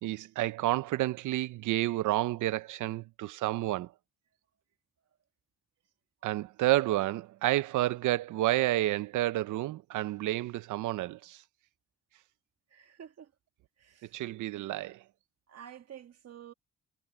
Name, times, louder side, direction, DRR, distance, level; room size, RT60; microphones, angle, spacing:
voice 1, 0.0-3.9 6.2-11.4 14.1-15.0, right 16 dB, 80° right, 0.8 m, -30 dB
voice 2, 12.7-13.3 13.8-14.0 15.5-16.5, right 9 dB, 55° right, 2.1 m, -49 dB
cardioid pair, 90°, 30 cm